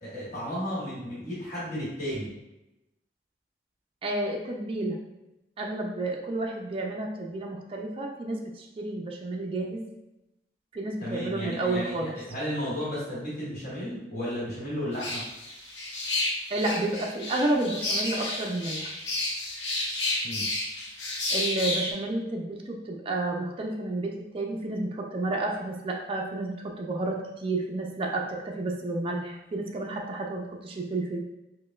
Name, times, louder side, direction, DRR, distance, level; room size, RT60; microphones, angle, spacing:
voice 1, 0.0-2.3 11.0-15.2 20.2-20.4, equal, 45° left, -10 dB, 1.5 m, -33 dB
voice 2, 4.0-5.0 5.6-9.8 10.7-12.1 16.5-18.9 21.3-31.2, right 2 dB, 30° right, 0 dB, 0.3 m, -31 dB
sound 1, 14.9-21.9, left 2 dB, 75° left, 0.8 m, -31 dB
5.0 x 2.1 x 2.3 m, 0.94 s
head